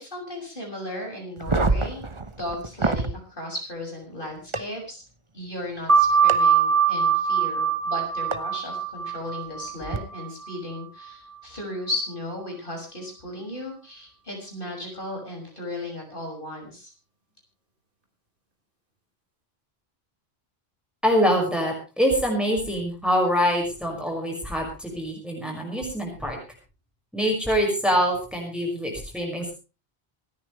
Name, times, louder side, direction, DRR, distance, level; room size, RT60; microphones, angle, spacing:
voice 1, 0.0-2.0 2.4-5.0 5.3-16.9, left 1 dB, 55° left, 0 dB, 6.7 m, -35 dB
sound 1, 1.4-3.1 4.5-4.6 6.3-6.4 8.3-8.4 9.8-10.0, right 3 dB, 30° right, 1.1 m, -25 dB
sound 2, 5.9-11.1, right 6 dB, 55° right, 4.1 m, -23 dB
voice 2, 21.0-26.4 27.1-29.5, equal, ahead, 0 dB, 5.8 m, -24 dB
27.0 x 10.0 x 3.3 m, 0.32 s
omnidirectional pair, 1.1 m